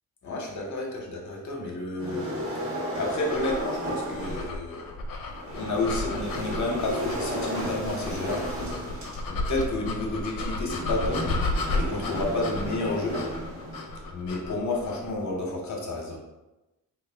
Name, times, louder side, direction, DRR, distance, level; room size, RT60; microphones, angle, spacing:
voice 1, 0.2-2.3 3.0-4.9 5.5-8.4 9.3-11.2 11.7-13.2 14.1-16.2, left 2 dB, 60° left, -1 dB, 0.9 m, -30 dB
sound 1, 2.0-4.6 5.3-14.1, equal, 40° right, 1.3 m, -34 dB
sound 2, 3.2-15.1, left 2 dB, 85° left, 0.6 m, -33 dB
3.4 x 2.4 x 3.4 m, 1.0 s
cardioid pair, 115°, 34 cm